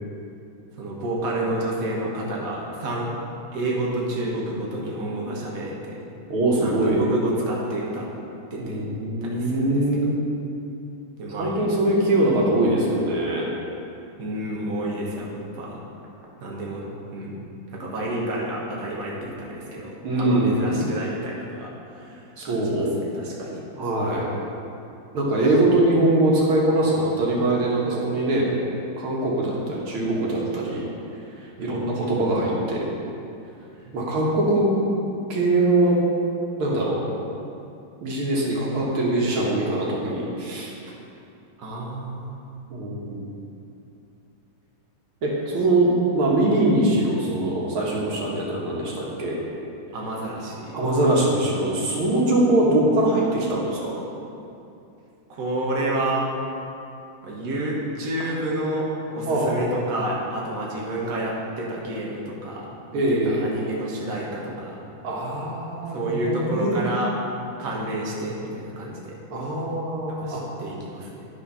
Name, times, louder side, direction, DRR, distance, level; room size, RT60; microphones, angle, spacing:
voice 1, 0.8-3.1 3.5-6.0 6.6-8.1 8.5-8.8 9.2-10.0 11.2-11.5 14.2-15.8 16.4-16.8 17.1-17.4 17.7-23.6 29.4-29.5 31.6-32.0 33.7-33.9 41.6-42.6 49.9-50.8 55.3-56.3 57.2-62.7 62.9-64.8 65.9-67.1 67.6-69.1 70.2-71.3, right 1 dB, 45° right, -3 dB, 1.6 m, -30 dB
voice 2, 6.3-7.0 8.6-10.1 11.4-13.5 20.0-20.8 22.4-23.0 23.8-24.3 25.1-28.5 29.0-30.9 31.4-32.8 33.9-34.7 35.0-36.0 36.6-37.0 38.0-40.7 42.7-43.2 45.2-49.4 50.7-54.0 59.3-59.5 62.9-63.5 65.0-66.8 69.3-70.4, right 1 dB, 85° right, -4 dB, 2.3 m, -22 dB
11.5 x 4.4 x 5.6 m, 2.7 s
omnidirectional pair, 2.2 m